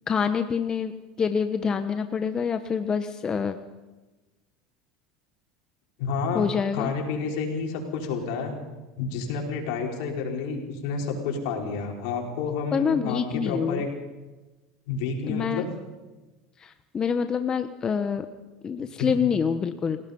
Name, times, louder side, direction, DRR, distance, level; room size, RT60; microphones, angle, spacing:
voice 1, 0.1-0.9 1.2-3.6 6.3-6.9 12.7-13.8 15.3-15.6 16.6-18.3 18.6-20.0, left 6 dB, 30° left, 9 dB, 1.1 m, -26 dB
voice 2, 6.0-6.4 6.7-8.6 9.0-13.9 14.9-15.7, left 5 dB, 75° left, 1 dB, 5.5 m, -30 dB
29.0 x 18.0 x 5.5 m, 1.2 s
supercardioid pair, 105°, 3 cm